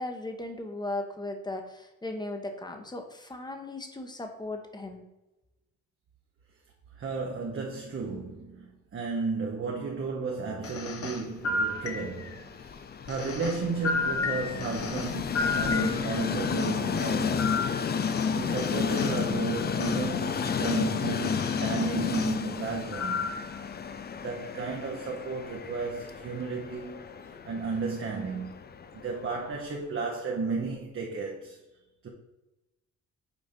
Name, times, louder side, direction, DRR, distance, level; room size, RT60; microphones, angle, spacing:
voice 1, 0.0-5.0, left 2 dB, 15° left, 1.1 m, -37 dB
voice 2, 7.0-23.3 24.2-27.0 27.4-28.5 28.9-31.6 32.0-32.1, right 4 dB, 45° right, 1.1 m, -34 dB
sound 1, 10.6-12.4 13.1-16.2 16.6-19.2 19.8-20.0 20.6-20.8 21.2-22.4 22.9-23.5, left 3 dB, 50° left, 1.0 m, -33 dB
Train, 11.5-29.6, left 6 dB, 35° left, 0.5 m, -32 dB
6.2 x 4.1 x 5.3 m
cardioid pair, 90°, 30 cm